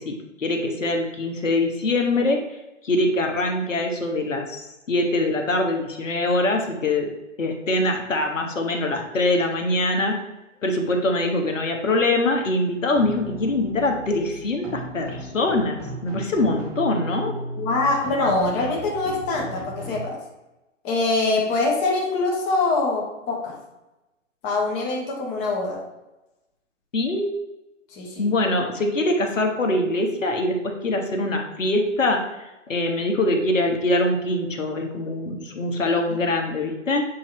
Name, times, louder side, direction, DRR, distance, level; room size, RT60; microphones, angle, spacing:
voice 1, 0.0-2.4 2.8-7.1 7.4-10.2 10.6-17.4 26.9-27.3 28.2-32.2 32.7-37.1, left 2 dB, 75° left, 3 dB, 1.4 m, -23 dB
sound 1, 13.0-19.9, equal, 5° right, 1.0 m, -36 dB
voice 2, 17.6-20.2 20.8-23.6 24.4-25.8 27.9-28.3 36.1-36.2, left 3 dB, 20° left, -1 dB, 1.0 m, -24 dB
8.2 x 2.9 x 4.4 m, 0.99 s
hypercardioid pair, 140°, 38 cm